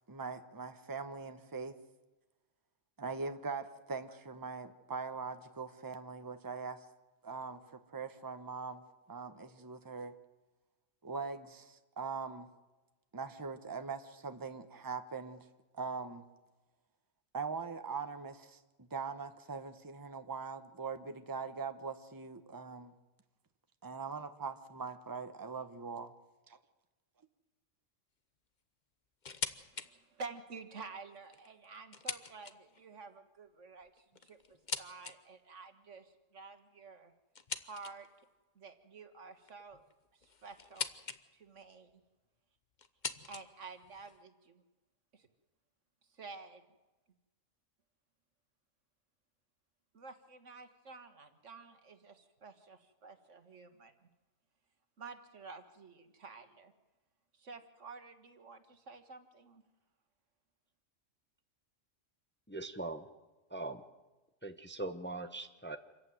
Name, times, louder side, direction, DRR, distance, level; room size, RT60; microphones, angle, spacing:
voice 1, 0.1-1.8 3.0-6.8 7.2-8.8 9.1-10.1 11.0-12.5 13.1-15.4 15.7-16.2 17.3-22.9 23.8-26.1 26.5-26.6, right 5 dB, 15° right, 8 dB, 1.1 m, -42 dB
sound 1, 29.2-29.9 30.3-30.4 31.1-32.8 33.8-35.2 37.3-38.2 39.4-41.2 41.5-42.0 42.8-44.2, left 5 dB, 40° left, 1.0 m, -43 dB
voice 2, 29.7-34.4 34.8-37.1 37.6-38.1 38.6-39.8 40.1-40.9 41.3-42.0 43.3-44.6 45.1-45.3 46.1-46.7 49.9-54.1 55.0-56.7 57.3-59.6, right 4 dB, 70° right, 9 dB, 2.0 m, -50 dB
voice 3, 62.5-63.1 63.5-63.8 64.4-65.8, right 2 dB, 10° left, 8 dB, 1.0 m, -41 dB
27.0 x 14.5 x 9.3 m, 1.2 s
omnidirectional pair, 1.3 m